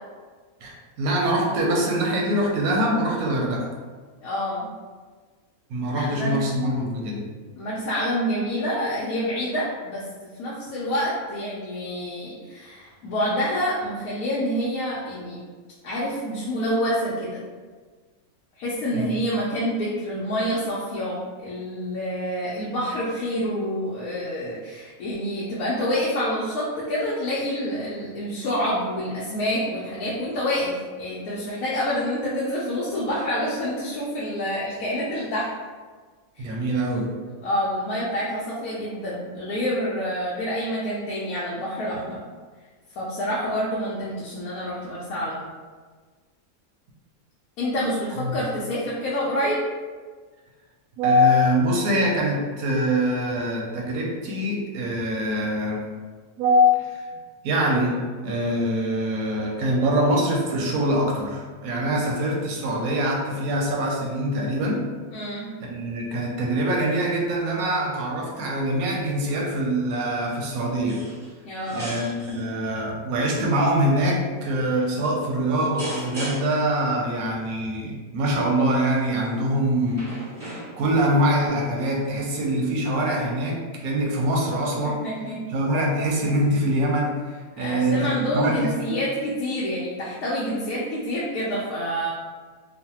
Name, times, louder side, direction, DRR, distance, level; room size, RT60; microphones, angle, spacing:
voice 1, 0.6-3.7 5.7-7.2 18.9-19.1 36.4-37.1 48.2-48.3 51.0-55.9 56.4-57.0 57.4-58.0 58.2-64.9 65.7-71.0 71.7-80.1 80.8-85.0 85.5-87.2 87.6-88.7, equal, 85° right, -1 dB, 1.1 m, -24 dB
voice 2, 4.2-4.7 5.9-6.4 7.6-10.0 10.4-15.4 15.8-17.4 18.6-35.5 36.3-36.4 37.4-42.2 42.9-45.4 47.6-49.6 65.1-65.5 71.4-71.9 85.0-85.4 87.6-92.1, equal, 80° left, -7 dB, 1.1 m, -27 dB
sound 1, 70.9-71.3 71.6-72.4 73.1-73.5 74.3-74.6 75.8-76.7 78.8-79.1 79.9-81.0 82.0-82.1, right 1 dB, 15° right, 0.7 m, -37 dB
3.1 x 2.1 x 2.9 m, 1.4 s
omnidirectional pair, 1.5 m